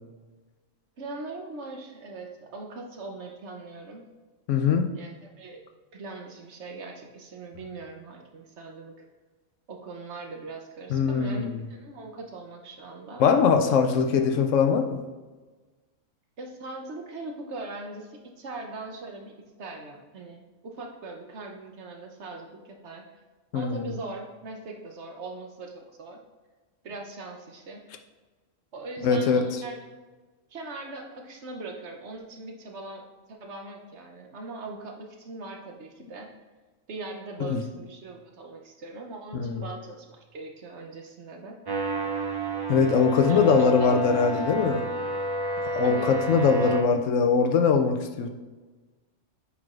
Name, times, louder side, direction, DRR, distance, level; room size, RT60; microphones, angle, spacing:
voice 1, 1.0-4.0 4.9-5.6 5.9-8.9 9.7-13.2 16.4-23.0 23.5-26.2 26.8-27.8 28.7-29.8 30.5-36.3 36.9-41.6 43.3-44.3 45.8-46.6, right 3 dB, 60° right, 2 dB, 1.1 m, -40 dB
voice 2, 4.5-4.9 10.9-11.6 13.2-15.0 23.5-23.9 29.0-29.4 37.4-37.6 39.3-39.6 42.7-44.8 45.7-48.3, left 5 dB, 75° left, 7 dB, 0.9 m, -22 dB
sound 1, 41.6-46.8, right 2 dB, 35° right, 0.4 m, -30 dB
8.5 x 4.7 x 2.4 m, 1.3 s
omnidirectional pair, 1.4 m